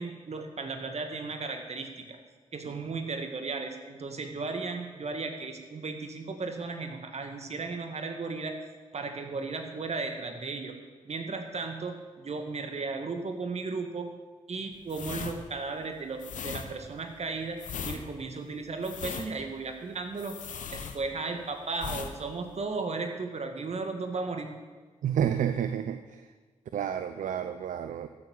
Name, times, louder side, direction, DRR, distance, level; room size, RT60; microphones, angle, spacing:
voice 1, 0.0-2.2 2.5-8.5 8.9-10.8 11.1-14.1 14.5-17.6 17.8-20.4 20.6-24.5, right 3 dB, 50° right, 5 dB, 2.1 m, -35 dB
sound 1, 14.9-21.4 21.7-22.1 22.4-22.6, left 6 dB, 70° left, 1.1 m, -38 dB
voice 2, 25.0-26.3 26.7-28.1, right 9 dB, 70° right, 10 dB, 0.6 m, -30 dB
14.0 x 7.6 x 7.2 m, 1.4 s
supercardioid pair, 40°, 14 cm